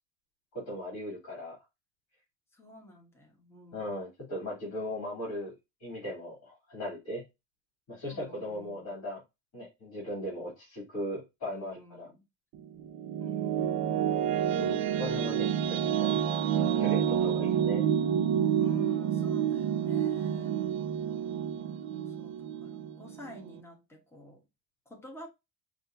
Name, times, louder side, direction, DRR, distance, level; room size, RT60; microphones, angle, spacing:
voice 1, 0.5-1.6 3.7-5.5 5.8-7.2 7.9-9.2 9.5-12.1 14.5-16.2 16.8-17.9, equal, 45° left, 3.4 m, -38 dB
voice 2, 2.5-3.9 8.0-8.9 11.4-12.2 13.2-14.3 18.6-20.6 21.9-24.4 24.8-25.3, equal, 5° left, 1.3 m, -50 dB
sound 1, 12.5-23.6, right 9 dB, 65° right, 0.8 m, -29 dB
6.7 x 2.9 x 2.7 m
cardioid pair, 165°, 40 cm